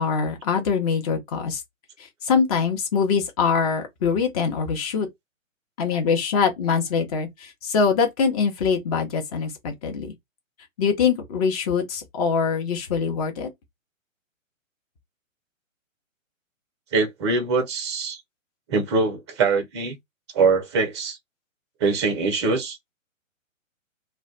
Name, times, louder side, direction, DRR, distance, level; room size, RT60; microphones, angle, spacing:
voice 1, 0.0-1.6 2.0-5.1 5.8-10.1 10.8-13.5, left 5 dB, 30° left, 0.8 m, -23 dB
voice 2, 16.9-18.2 18.7-20.0 20.3-21.2 21.8-22.8, right 4 dB, 20° right, 0.5 m, -23 dB
2.2 x 2.2 x 3.8 m
figure-of-eight pair, 130°, 40 cm